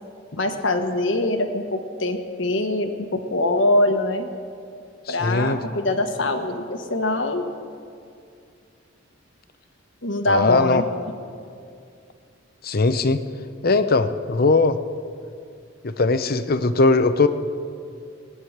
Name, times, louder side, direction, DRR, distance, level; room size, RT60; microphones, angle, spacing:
voice 1, 0.3-4.3 5.1-7.4 10.0-10.8, left 2 dB, 65° left, 6 dB, 1.3 m, -23 dB
voice 2, 5.1-5.6 10.3-10.8 12.6-13.2 13.6-14.8 15.8-17.3, left 3 dB, 50° left, 11 dB, 0.7 m, -19 dB
19.0 x 9.6 x 7.3 m, 2.4 s
head